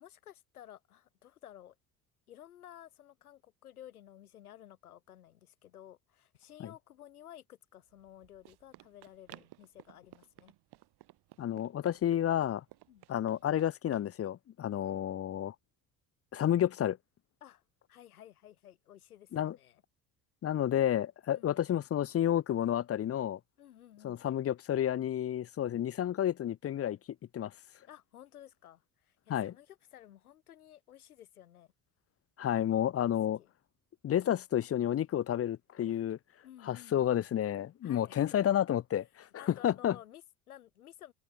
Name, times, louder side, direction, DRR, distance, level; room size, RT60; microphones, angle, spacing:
voice 1, 0.0-1.8 2.3-10.5 12.9-13.0 17.4-17.6 17.9-19.8 21.3-21.6 23.6-24.2 25.6-25.8 27.9-31.7 33.0-33.5 36.4-37.3 37.8-38.5 39.4-41.1, left 11 dB, 90° left, 3.5 m, -54 dB
Run, 7.9-14.1, right 16 dB, 65° right, 8.0 m, -57 dB
voice 2, 11.4-12.6 13.1-15.5 16.3-17.0 19.3-19.6 20.4-23.4 24.0-27.0 27.3-27.5 29.3-29.5 32.4-33.4 34.0-36.2 36.6-40.0, left 11 dB, 35° left, 0.7 m, -30 dB
hypercardioid pair, 60°, 43 cm